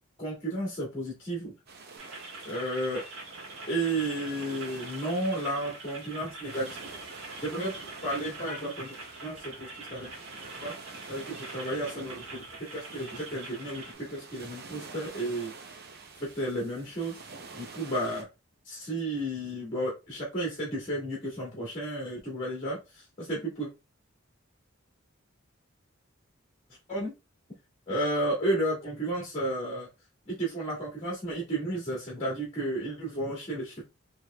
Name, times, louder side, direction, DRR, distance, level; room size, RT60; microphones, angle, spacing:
voice 1, 0.2-1.5 2.5-3.0 3.7-7.1 7.4-7.7 8.0-8.9 9.2-10.1 10.6-10.7 11.1-12.5 12.7-13.8 14.1-15.5 16.3-17.2 17.5-18.3 18.7-23.7 26.9-27.1 27.9-29.9 30.3-33.8, right 1 dB, 30° left, -5 dB, 1.6 m, -32 dB
sound 1, 1.7-18.2, right 4 dB, 50° right, 0.7 m, -48 dB
sound 2, 2.0-13.9, right 2 dB, 70° right, 1.5 m, -44 dB
4.5 x 3.1 x 2.3 m, 0.25 s
head